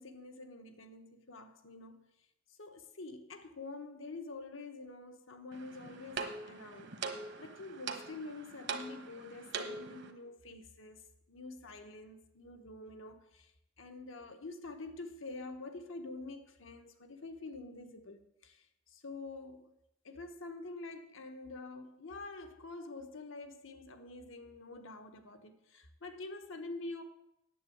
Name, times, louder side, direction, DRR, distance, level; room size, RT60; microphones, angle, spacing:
voice 1, 0.0-2.0 2.6-6.9 7.4-13.5 13.8-19.7 20.0-27.0, left 3 dB, 75° left, 1.2 m, -47 dB
sound 1, 5.5-10.1, right 4 dB, 60° right, 1.2 m, -42 dB
9.1 x 7.9 x 7.9 m
head